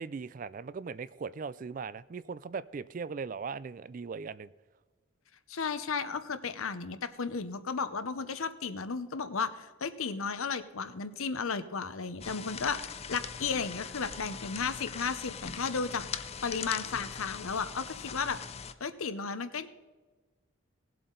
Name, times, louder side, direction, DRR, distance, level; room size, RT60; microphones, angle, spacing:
voice 1, 0.0-4.5, right 5 dB, 40° right, 17 dB, 0.3 m, -39 dB
voice 2, 5.5-12.8 13.1-18.4 18.8-19.7, left 5 dB, 80° left, 12 dB, 0.8 m, -34 dB
sound 1, 12.2-18.7, left 7 dB, 30° left, 0.4 m, -41 dB
18.5 x 7.8 x 3.9 m, 1.3 s
head